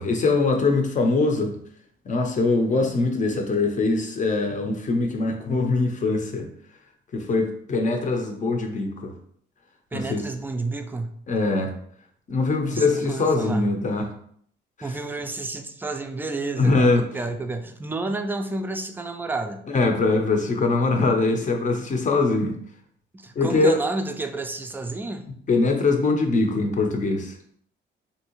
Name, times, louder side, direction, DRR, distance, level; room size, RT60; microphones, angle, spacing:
voice 1, 0.0-1.6 2.1-6.5 7.1-9.1 9.9-10.2 11.3-11.7 12.3-14.1 16.6-17.0 19.7-22.5 23.3-23.7 25.5-27.3, left 3 dB, 40° left, 4 dB, 0.6 m, -22 dB
voice 2, 9.9-11.1 12.6-13.7 14.8-19.6 23.1-25.2, right 2 dB, 10° right, 6 dB, 0.4 m, -30 dB
3.1 x 2.7 x 2.9 m, 0.63 s
cardioid pair, 90°, 20 cm